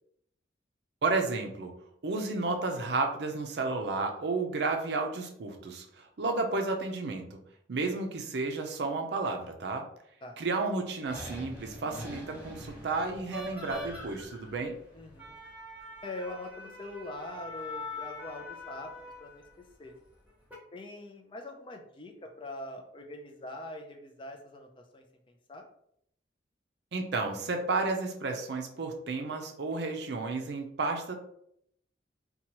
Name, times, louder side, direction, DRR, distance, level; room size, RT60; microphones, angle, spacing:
voice 1, 1.0-1.8 2.0-7.4 7.7-9.8 10.4-14.8 26.9-31.1, right 3 dB, 65° right, 4 dB, 0.5 m, -32 dB
sound 1, 11.1-19.5 20.3-20.6, left 1 dB, 10° right, 0.8 m, -43 dB
voice 2, 14.9-15.4 16.0-18.9 19.2-19.4 19.8-19.9 20.7-25.6, left 2 dB, 30° left, 3 dB, 0.4 m, -43 dB
2.8 x 2.3 x 2.9 m, 0.71 s
head